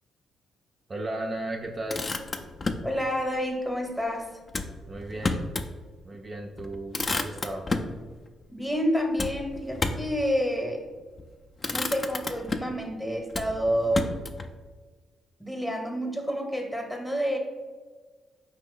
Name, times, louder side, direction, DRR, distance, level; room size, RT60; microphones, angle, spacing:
voice 1, 0.9-2.1 4.9-5.4 6.0-7.7, right 1 dB, 30° right, 0 dB, 0.4 m, -35 dB
Motor vehicle (road), 1.6-2.9 4.5-5.7 6.1-6.2 6.6-8.0 9.2-10.2 11.0-11.3 11.6-12.8 13.3-14.5, left 3 dB, 30° left, 0.4 m, -31 dB
voice 2, 2.8-4.3 8.5-10.8 11.7-14.1 15.4-17.4, equal, 5° left, 2 dB, 0.8 m, -29 dB
4.3 x 2.9 x 3.7 m, 1.4 s
cardioid pair, 90°, 0 cm